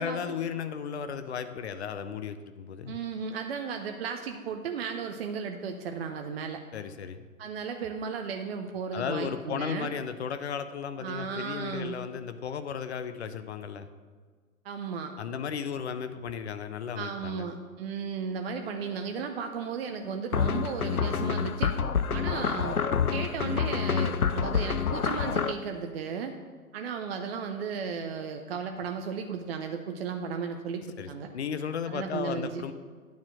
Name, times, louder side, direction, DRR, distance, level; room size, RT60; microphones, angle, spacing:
voice 1, 0.0-3.0 6.7-7.3 8.9-13.9 15.2-17.5 31.0-31.1 31.3-32.7, left 7 dB, 50° left, 10 dB, 0.6 m, -35 dB
voice 2, 2.9-6.6 7.4-9.9 11.0-12.0 14.6-15.1 16.9-21.8 22.1-22.8 23.1-26.3 26.7-31.3 31.9-32.6, right 6 dB, 45° right, 5 dB, 0.6 m, -35 dB
sound 1, 20.3-25.5, left 6 dB, 90° left, 0.6 m, -27 dB
9.3 x 4.3 x 7.5 m, 1.5 s
figure-of-eight pair, 110°, 43 cm